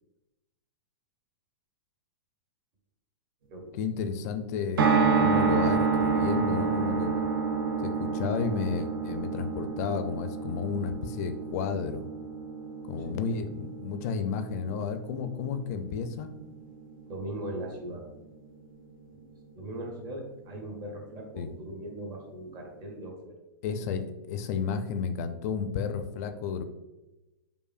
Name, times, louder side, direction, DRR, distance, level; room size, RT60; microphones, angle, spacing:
voice 1, 3.7-7.2 7.8-12.1 12.9-16.3 21.4-21.5 23.6-26.6, left 6 dB, 45° left, 9 dB, 0.4 m, -32 dB
sound 1, 4.8-17.0 17.3-17.4 17.6-17.7, right 5 dB, 90° right, 0.4 m, -29 dB
voice 2, 17.1-18.0 19.1-19.2 19.5-23.4, right 1 dB, 30° right, 1 dB, 0.8 m, -39 dB
4.9 x 2.5 x 2.4 m, 1.0 s
hypercardioid pair, 140°, 11 cm